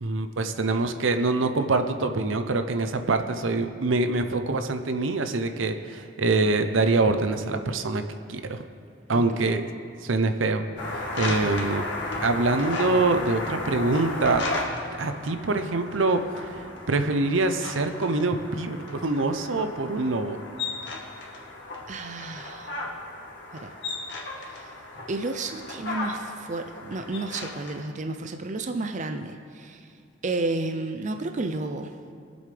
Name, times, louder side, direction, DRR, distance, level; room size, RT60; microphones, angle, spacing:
voice 1, 0.0-8.0 8.3-8.6 9.1-9.7 10.0-10.6 10.9-11.9 12.2-14.5 14.9-20.4, right 3 dB, 75° right, 8 dB, 0.7 m, -25 dB
voice 2, 9.1-9.4 11.3-11.6 21.9-22.7 23.5-23.7 24.5-24.7 25.1-29.9 30.2-31.9, right 2 dB, 40° right, 6 dB, 0.5 m, -32 dB
sound 1, 10.8-27.8, left 2 dB, 60° left, 1.8 m, -35 dB
22.0 x 7.9 x 3.4 m, 2.5 s
head